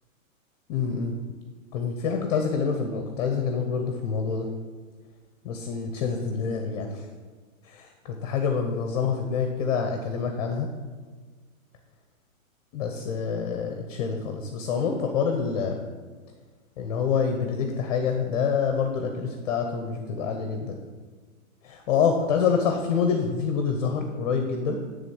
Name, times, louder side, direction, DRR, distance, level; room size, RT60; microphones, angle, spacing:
voice 1, 0.7-1.1 1.7-4.5 5.4-7.1 7.6-10.7 12.7-15.9 16.8-20.8 21.6-24.8, left 6 dB, 30° left, 4 dB, 0.7 m, -27 dB
10.5 x 3.6 x 7.0 m, 1.5 s
hypercardioid pair, 155°, 42 cm